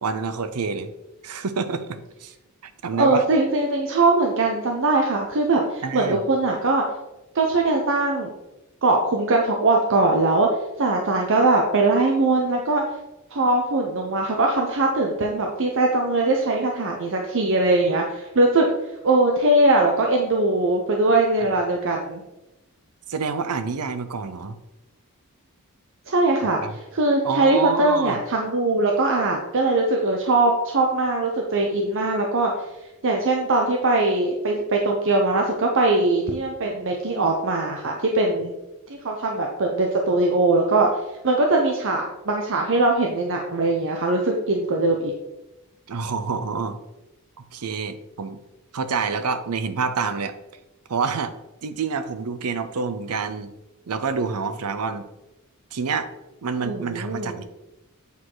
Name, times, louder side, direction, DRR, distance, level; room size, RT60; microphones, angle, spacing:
voice 1, 0.0-0.9 1.2-2.3 2.6-3.2 5.8-6.2 23.1-24.6 26.4-26.7 27.2-28.2 45.9-46.8 47.4-48.4 48.7-50.3 50.9-51.3 51.6-53.5 53.9-55.1 55.7-56.1 56.4-57.4, right 5 dB, 85° right, 11 dB, 0.6 m, -27 dB
voice 2, 2.9-6.9 7.3-8.3 8.8-10.5 10.8-12.8 13.3-18.7 19.0-22.2 26.1-32.7 33.0-38.5 38.9-40.9 41.2-45.1 56.6-57.4, right 2 dB, 60° right, 1 dB, 0.8 m, -21 dB
8.3 x 4.8 x 3.9 m, 0.97 s
head